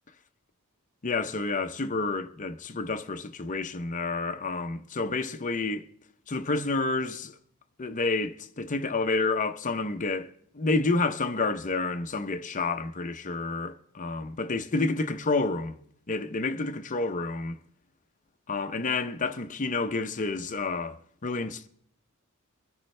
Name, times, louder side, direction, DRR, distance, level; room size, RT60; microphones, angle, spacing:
voice 1, 1.0-5.9 6.3-7.3 7.8-10.3 10.5-15.8 16.1-17.6 18.5-21.0 21.2-21.7, left 3 dB, 35° left, 0.7 m, -29 dB
24.5 x 10.5 x 3.2 m
head